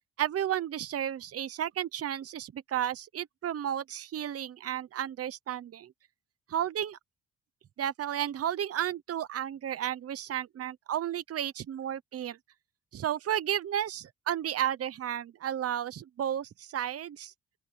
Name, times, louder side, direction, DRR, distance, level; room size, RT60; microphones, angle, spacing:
voice 1, 0.2-5.9 6.5-7.0 7.8-12.4 12.9-17.3, right 10 dB, 50° right, 0.9 m, -33 dB
open air
cardioid pair, 90°, 30 cm